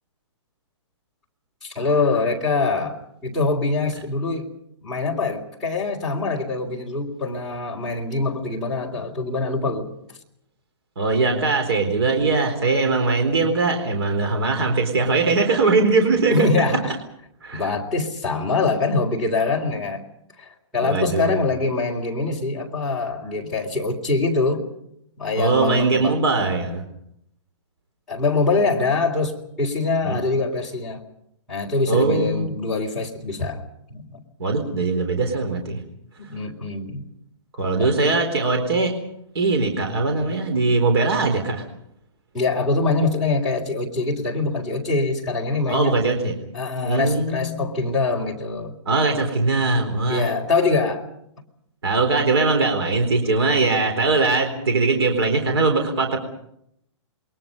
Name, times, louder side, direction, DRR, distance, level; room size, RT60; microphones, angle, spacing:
voice 1, 1.6-3.0 3.2-4.5 4.8-9.9 16.3-16.9 17.5-20.0 20.4-24.6 25.2-26.2 28.1-31.0 31.5-33.6 33.9-34.2 36.3-37.1 37.8-37.9 42.3-46.0 46.5-48.8 50.1-51.0, left 3 dB, ahead, -7 dB, 3.6 m, -24 dB
voice 2, 11.0-16.5 17.4-17.6 20.8-21.4 25.4-26.8 30.0-30.2 31.9-32.5 34.4-35.8 37.6-38.9 39.3-41.6 45.7-46.3 46.8-47.7 48.9-50.3 51.8-56.2, right 3 dB, 55° right, 5 dB, 4.1 m, -21 dB
29.0 x 22.5 x 5.5 m, 0.75 s
hypercardioid pair, 175°, 16 cm